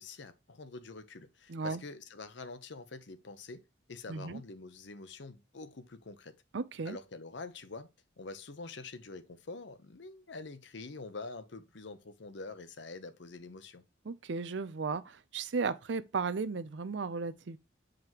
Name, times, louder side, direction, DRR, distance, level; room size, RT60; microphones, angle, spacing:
voice 1, 0.0-6.4 6.8-7.9 8.2-13.8, left 3 dB, 70° left, 0.8 m, -46 dB
voice 2, 1.5-1.8 4.1-4.4 6.5-7.0 14.1-17.6, right 4 dB, 70° right, 0.5 m, -35 dB
7.7 x 5.0 x 3.0 m
head